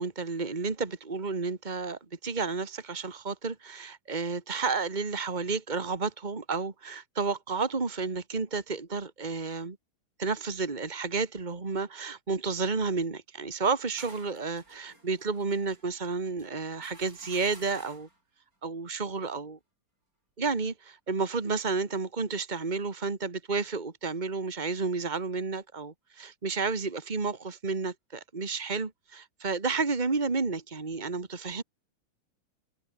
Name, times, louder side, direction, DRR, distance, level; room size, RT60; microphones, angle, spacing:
voice 1, 0.0-9.8 10.2-18.1 18.6-19.6 20.4-31.6, right 4 dB, 40° right, 0.6 m, -31 dB
sound 1, 13.5-18.2, right 2 dB, 25° right, 8.4 m, -53 dB
omnidirectional pair, 4.0 m